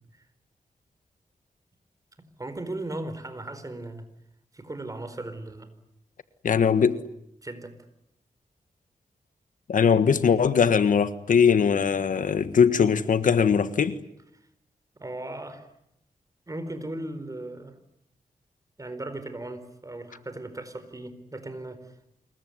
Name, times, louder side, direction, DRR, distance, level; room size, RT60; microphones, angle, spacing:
voice 1, 2.2-4.0 4.5-5.7 7.4-7.8 14.9-15.7 16.5-17.8 18.8-21.9, right 2 dB, 25° right, 4.6 m, -37 dB
voice 2, 6.4-7.0 9.7-14.0, left 6 dB, 75° left, 1.6 m, -21 dB
26.5 x 22.0 x 9.6 m
wide cardioid pair, 85°, 14 cm